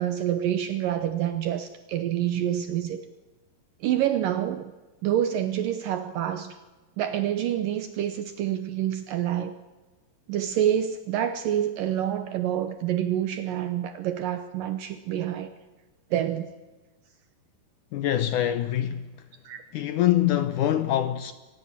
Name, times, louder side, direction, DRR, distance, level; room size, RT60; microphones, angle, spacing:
voice 1, 0.0-3.1 3.8-4.7 5.0-6.6 7.0-9.6 10.3-15.5 16.1-16.5 19.4-19.6, right 11 dB, 70° right, 2.3 m, -27 dB
voice 2, 17.9-19.1 19.7-21.3, left 12 dB, 80° left, 1.8 m, -24 dB
24.5 x 19.0 x 7.4 m
omnidirectional pair, 4.6 m